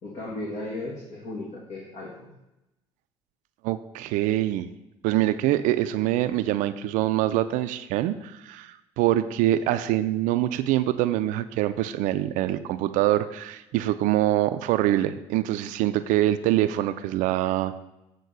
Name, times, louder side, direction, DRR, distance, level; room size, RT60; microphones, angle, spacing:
voice 1, 0.0-2.3, left 2 dB, 55° left, -3 dB, 1.9 m, -35 dB
voice 2, 3.6-4.7 5.0-17.8, right 14 dB, 65° right, 11 dB, 0.4 m, -24 dB
8.1 x 3.8 x 6.7 m, 0.93 s
hypercardioid pair, 60°, 14 cm